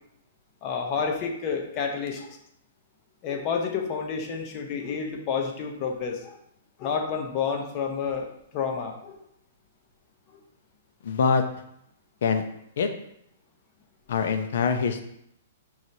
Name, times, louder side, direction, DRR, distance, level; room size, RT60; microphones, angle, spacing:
voice 1, 0.6-2.4 3.2-6.3 6.8-9.2, left 6 dB, 35° left, 3 dB, 0.8 m, -30 dB
voice 2, 11.0-11.4 12.2-12.4 12.8-12.9 14.1-15.0, left 5 dB, 70° left, 7 dB, 0.6 m, -23 dB
5.5 x 3.2 x 2.7 m, 0.75 s
hypercardioid pair, 140°, 0 cm